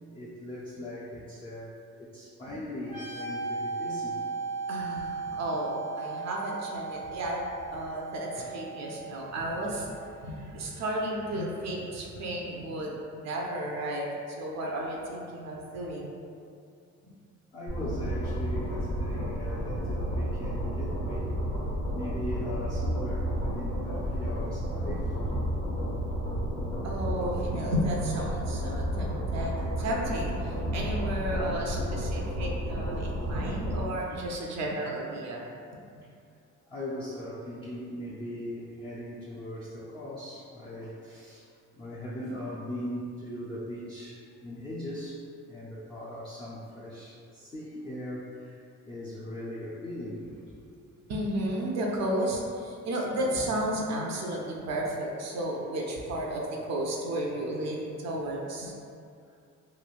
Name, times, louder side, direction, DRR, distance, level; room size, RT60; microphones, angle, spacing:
voice 1, 0.1-1.7 2.0-4.2 8.3-8.6 10.1-10.5 10.7-10.8 17.5-21.3 21.9-25.2 26.4-26.5 27.1-27.2 31.4-31.5 33.1-33.3 36.6-41.5 41.7-45.2 45.5-48.6 48.8-50.2 50.5-50.8 59.2-59.3, left 1 dB, 20° left, -7 dB, 0.4 m, -39 dB
sound 1, 2.8-10.3, right 4 dB, 55° left, 1.2 m, -37 dB
voice 2, 4.7-7.4 7.7-9.9 10.2-16.2 17.0-17.1 26.8-35.5 51.1-58.7, right 1 dB, 60° right, -2 dB, 0.5 m, -33 dB
sound 2, 17.7-33.8, equal, 90° left, 1.1 m, -31 dB
3.0 x 2.5 x 2.4 m, 2.4 s
cardioid pair, 90°, 30 cm